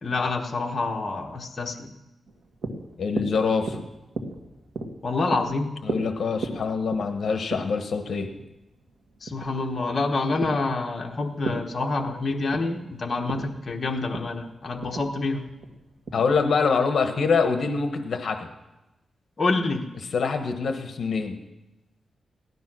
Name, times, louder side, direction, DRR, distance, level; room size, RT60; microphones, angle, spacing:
voice 1, 0.0-1.9 5.0-5.8 9.2-15.5 19.4-19.9, left 3 dB, 35° left, 1 dB, 1.2 m, -27 dB
sound 1, 2.3-16.8, right 2 dB, 55° right, 2.0 m, -37 dB
voice 2, 3.0-3.8 5.8-8.3 16.1-18.5 20.1-21.3, left 5 dB, 55° left, 6 dB, 1.2 m, -25 dB
16.5 x 12.5 x 6.2 m, 0.99 s
wide cardioid pair, 150°, 0 cm